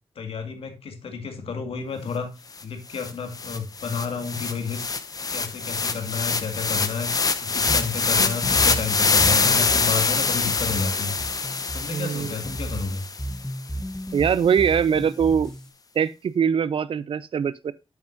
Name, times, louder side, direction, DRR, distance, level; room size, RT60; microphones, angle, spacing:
voice 1, 0.2-2.3 2.6-4.8 5.3-7.1 7.4-11.2 11.7-13.1, left 5 dB, 75° left, 2.3 m, -31 dB
sound 1, 2.6-2.7 2.9-13.3, left 4 dB, 40° left, 1.0 m, -24 dB
sound 2, 7.7-15.7, right 1 dB, 5° left, 1.1 m, -34 dB
voice 2, 11.9-12.3 14.1-15.5 15.9-17.7, right 7 dB, 65° right, 0.7 m, -22 dB
9.6 x 8.6 x 2.6 m
wide cardioid pair, 115°, 10 cm